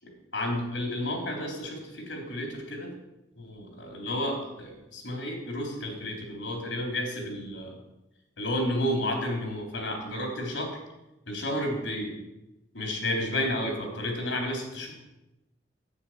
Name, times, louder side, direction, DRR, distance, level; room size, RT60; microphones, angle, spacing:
voice 1, 0.3-2.9 3.4-7.8 8.4-10.8 11.3-12.2 12.7-14.9, left 1 dB, 85° left, 2 dB, 3.7 m, -31 dB
9.8 x 9.0 x 7.5 m, 0.95 s
head